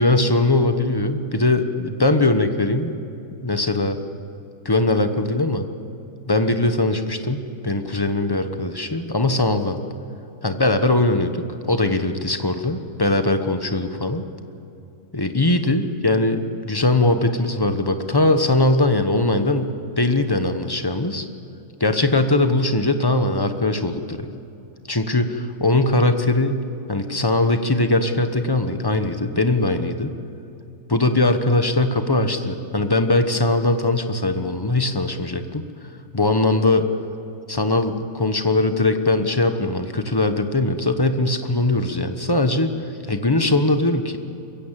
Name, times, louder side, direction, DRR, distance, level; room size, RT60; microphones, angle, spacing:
voice 1, 0.0-3.0 3.4-4.0 4.6-5.6 6.3-9.8 10.4-14.3 15.1-21.3 21.8-24.3 24.9-26.6 26.9-30.1 30.9-35.6 36.1-36.9 37.5-42.7 43.1-44.2, left 2 dB, 20° left, 8 dB, 1.0 m, -20 dB
22.5 x 16.0 x 7.6 m, 2.8 s
omnidirectional pair, 1.5 m